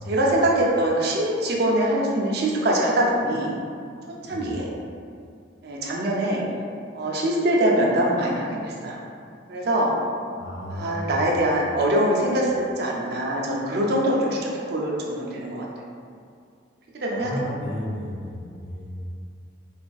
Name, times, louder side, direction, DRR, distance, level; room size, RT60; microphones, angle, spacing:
voice 1, 0.1-3.6 4.2-4.7 5.6-6.4 6.9-9.0 9.5-10.0 10.7-15.7 16.9-17.4 18.3-18.4, right 1 dB, 55° right, -3 dB, 0.4 m, -23 dB
voice 2, 10.4-11.3 17.2-19.0, equal, 80° left, -4 dB, 0.7 m, -33 dB
3.4 x 2.3 x 2.3 m, 2.3 s
head